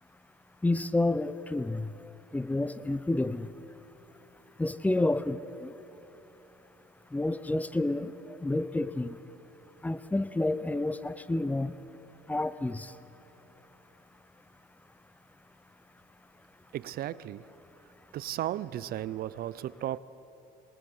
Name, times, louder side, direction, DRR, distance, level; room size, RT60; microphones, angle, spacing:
voice 1, 0.6-1.9 2.3-3.5 4.6-5.7 7.1-8.1 8.4-9.2 9.8-11.7 12.3-12.9, left 2 dB, 10° left, 0.8 m, -29 dB
voice 2, 16.7-17.4 18.1-20.0, right 12 dB, 65° right, 0.6 m, -35 dB
23.5 x 20.0 x 8.0 m
cardioid pair, 110°, 17 cm